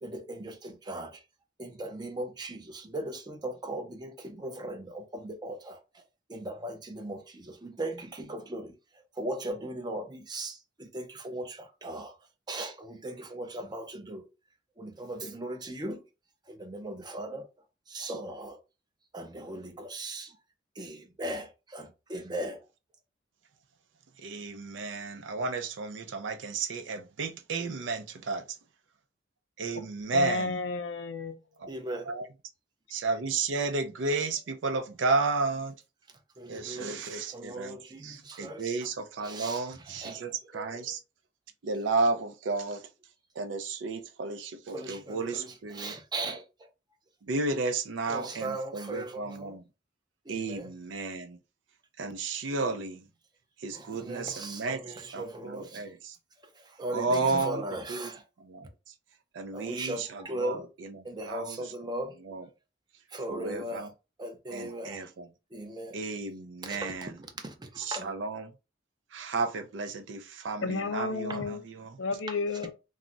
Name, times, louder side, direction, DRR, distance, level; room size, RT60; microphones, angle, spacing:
voice 1, 0.0-1.1 1.6-5.8 6.3-8.7 9.2-12.1 12.5-14.2 14.8-16.0 16.5-17.5 17.9-18.6 19.1-20.3 20.8-22.6 31.7-32.1 36.4-37.0 37.3-38.6 39.2-39.6 40.0-40.2 40.5-40.8 44.7-45.5 45.7-46.4 48.1-49.6 50.3-50.6 53.7-55.8 56.8-58.2 59.5-60.7 61.0-62.1 63.1-63.9 64.2-65.0 65.5-66.0 66.6-67.1 67.4-67.5 67.9-68.1, right 1 dB, 25° right, 0.5 m, -38 dB
voice 2, 24.2-28.4 29.6-30.5 31.6-31.7 32.0-32.3 32.9-35.7 36.5-41.0 41.6-42.8 43.4-45.9 47.2-49.6 50.3-51.4 52.0-53.0 53.6-54.8 55.1-56.2 56.9-58.1 58.4-58.7 59.3-61.9 62.2-62.5 63.3-63.9 64.5-65.3 65.9-67.1 67.8-68.5 69.1-71.9, right 3 dB, 75° right, 0.4 m, -33 dB
voice 3, 30.1-31.4 70.6-71.6 72.0-72.7, left 3 dB, 85° left, 0.5 m, -32 dB
2.3 x 2.0 x 3.8 m
head